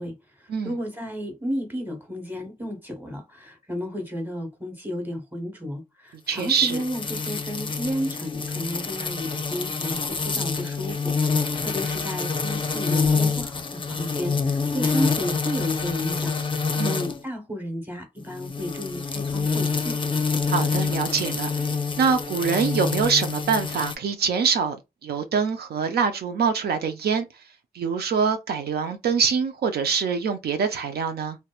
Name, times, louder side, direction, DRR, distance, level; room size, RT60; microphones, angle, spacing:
voice 1, 0.0-20.0, equal, 10° right, 1.1 m, -33 dB
voice 2, 6.3-6.8 16.8-17.0 20.5-21.5 22.0-24.8 25.0-27.3 27.7-31.4, right 6 dB, 80° right, 0.4 m, -24 dB
sound 1, 6.4-17.2 18.3-23.9, left 4 dB, 30° left, 0.5 m, -27 dB
2.8 x 2.1 x 2.3 m
cardioid pair, 55°, 16 cm